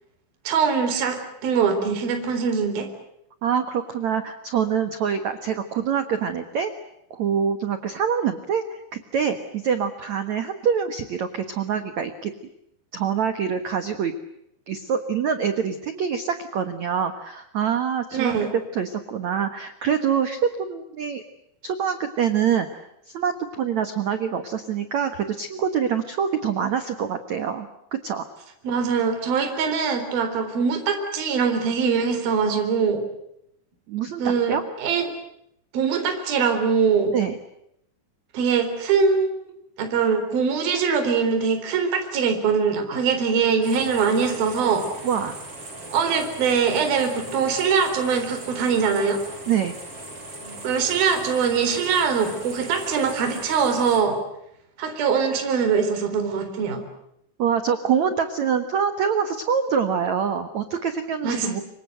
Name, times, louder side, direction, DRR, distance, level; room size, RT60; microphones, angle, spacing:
voice 1, 0.5-2.9 18.1-18.5 28.6-33.0 34.2-35.1 35.7-37.1 38.3-39.4 39.8-44.9 45.9-49.2 50.6-54.2 54.8-56.8 61.2-61.6, right 6 dB, 50° right, 6 dB, 5.5 m, -22 dB
voice 2, 3.4-6.7 7.1-12.3 12.9-14.1 14.7-18.3 18.7-21.2 21.6-22.8 23.1-28.2 33.9-34.6 37.1-37.4 42.9-43.0 45.0-45.4 49.5-49.7 57.4-61.6, right 7 dB, 75° right, 9 dB, 1.7 m, -25 dB
sound 1, 43.6-54.0, right 2 dB, 30° right, 7.5 m, -39 dB
27.5 x 24.5 x 7.8 m, 0.77 s
omnidirectional pair, 5.6 m